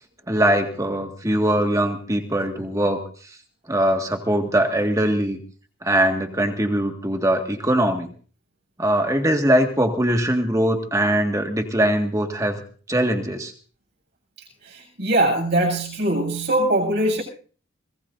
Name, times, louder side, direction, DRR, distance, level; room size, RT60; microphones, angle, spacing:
voice 1, 0.3-3.0 3.7-5.4 5.8-8.1 8.8-12.6 12.9-13.5, right 1 dB, 15° right, 4 dB, 1.9 m, -21 dB
voice 2, 14.6-17.2, right 1 dB, 55° right, 1 dB, 7.9 m, -22 dB
24.5 x 20.0 x 2.7 m, 0.42 s
head